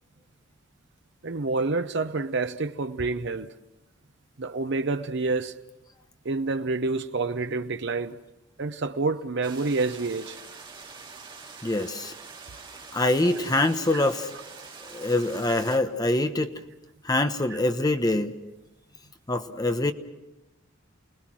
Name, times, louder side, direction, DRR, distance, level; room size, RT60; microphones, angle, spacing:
voice 1, 1.2-3.5 4.4-5.5 6.2-8.2 8.6-10.4, right 3 dB, 65° right, 0.8 m, -28 dB
sound 1, 9.4-15.8, right 4 dB, 25° right, 2.2 m, -45 dB
voice 2, 11.6-12.1 12.9-14.3 14.8-16.5 17.0-18.3 19.3-19.9, left 2 dB, 20° left, 1.2 m, -24 dB
29.5 x 20.0 x 6.2 m
head